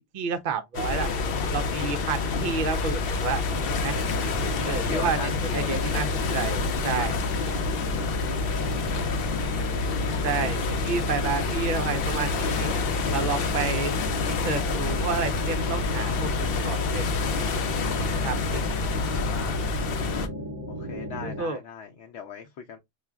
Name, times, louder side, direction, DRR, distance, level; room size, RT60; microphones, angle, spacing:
voice 1, 0.1-1.1 1.5-3.4 3.8-4.0 4.6-6.1 6.3-7.1 8.7-9.1 9.9-12.7 13.1-13.9 14.3-17.1 18.0-18.6 20.8-21.6, right 5 dB, 50° right, 0.7 m, -30 dB
sound 1, 0.7-20.3, left 4 dB, 60° left, 0.8 m, -28 dB
sound 2, 2.2-13.9, left 1 dB, 20° left, 1.3 m, -51 dB
sound 3, 3.5-21.4, equal, 15° right, 0.7 m, -36 dB
voice 2, 4.6-6.1 8.7-9.2 11.3-11.5 18.9-19.6 20.7-22.8, left 7 dB, 85° left, 0.9 m, -39 dB
5.4 x 2.4 x 2.2 m
omnidirectional pair, 1.2 m